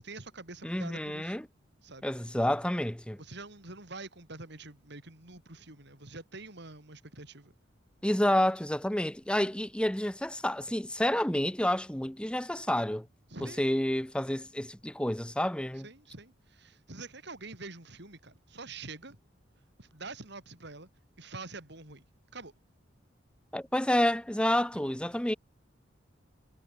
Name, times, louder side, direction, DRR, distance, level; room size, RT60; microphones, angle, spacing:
voice 1, 0.0-1.4 1.8-2.1 3.2-7.5 13.3-13.6 15.8-19.2 19.8-20.9 21.2-22.1 22.3-22.5 24.7-24.9, right 3 dB, 65° right, 4.1 m, -46 dB
voice 2, 0.6-1.4 2.0-3.2 8.0-13.1 13.4-15.9 23.5-25.3, left 1 dB, 5° left, 1.0 m, -29 dB
head